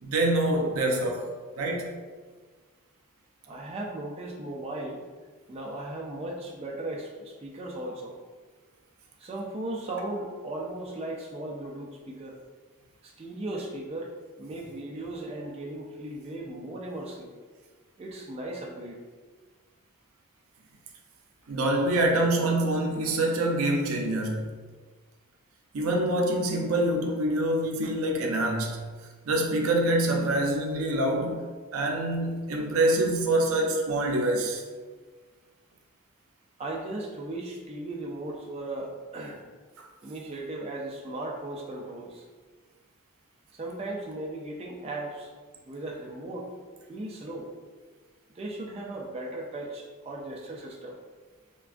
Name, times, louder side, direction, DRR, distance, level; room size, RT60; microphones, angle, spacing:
voice 1, 0.0-1.3 1.6-1.9 21.5-24.5 25.7-28.8 29.3-31.4 31.7-34.6 39.8-39.9, right 1 dB, 85° right, 1 dB, 0.5 m, -25 dB
voice 2, 3.5-5.0 5.5-8.2 9.2-12.4 13.0-14.1 14.4-17.3 18.0-19.0 36.6-39.4 40.0-42.2 43.6-45.3 45.7-46.5 46.9-47.5 48.4-51.0, right 2 dB, 30° right, -2 dB, 0.3 m, -37 dB
3.4 x 2.2 x 2.4 m, 1.4 s
head